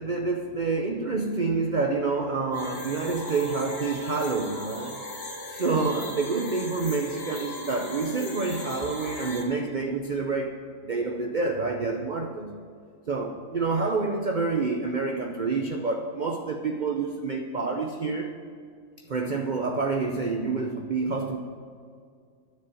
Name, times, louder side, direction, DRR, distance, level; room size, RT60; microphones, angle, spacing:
voice 1, 0.0-5.0 5.5-12.6 13.1-18.3 19.1-21.4, right 4 dB, 50° right, 4 dB, 0.6 m, -28 dB
sound 1, 2.5-9.4, left 2 dB, 40° left, 1.9 m, -38 dB
10.5 x 6.9 x 7.7 m, 2.2 s
omnidirectional pair, 1.7 m